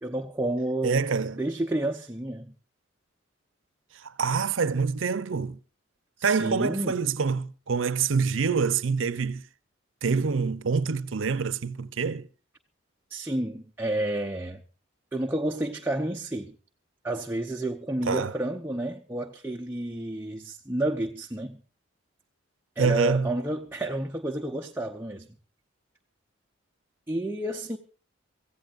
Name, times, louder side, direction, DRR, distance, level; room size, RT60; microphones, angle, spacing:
voice 1, 0.0-1.0 1.4-2.5 6.2-7.0 13.1-14.6 15.1-16.6 17.0-21.6 22.8-25.3 27.1-27.8, right 1 dB, 10° right, 0.7 m, -30 dB
voice 2, 0.8-1.4 3.9-5.6 6.2-9.4 10.0-12.3 18.1-18.3 22.8-23.3, right 5 dB, 75° right, 0.7 m, -26 dB
25.5 x 15.5 x 2.5 m
head